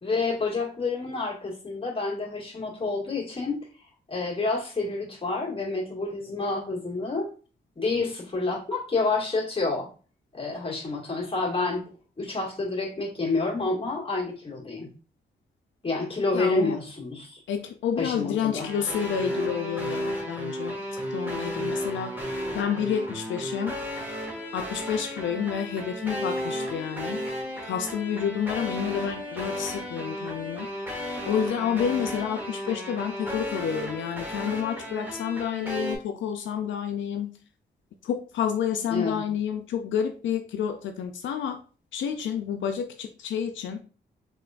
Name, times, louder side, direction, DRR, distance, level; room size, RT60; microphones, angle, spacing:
voice 1, 0.0-3.6 4.1-7.3 7.8-9.9 10.3-11.8 12.2-14.9 15.8-17.4 18.0-18.7 38.9-39.2, left 3 dB, 30° left, -4 dB, 1.9 m, -28 dB
voice 2, 16.3-16.8 17.5-20.8 21.1-22.1 22.5-23.8 24.5-27.2 27.6-30.7 31.3-37.3 38.0-41.6 41.9-43.8, left 8 dB, 85° left, 5 dB, 0.4 m, -29 dB
sound 1, 18.6-36.0, equal, 10° right, 1.6 m, -34 dB
3.8 x 3.5 x 2.4 m, 0.38 s
cardioid pair, 70°, 19 cm